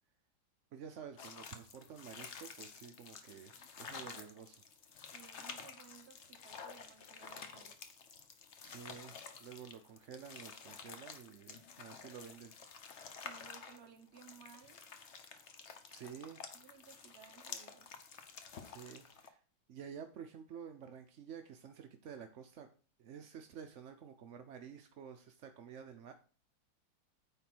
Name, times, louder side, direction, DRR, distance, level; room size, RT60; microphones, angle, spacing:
voice 1, 0.7-4.6 8.6-12.5 15.9-16.4 18.6-19.4 19.7-22.7 23.0-26.1, right 7 dB, 70° right, 0.7 m, -51 dB
sound 1, 1.2-19.3, left 6 dB, 50° left, 0.9 m, -51 dB
voice 2, 5.0-8.0 13.2-14.8 16.5-17.9, right 7 dB, 45° right, 0.9 m, -59 dB
9.2 x 3.7 x 6.1 m
omnidirectional pair, 2.1 m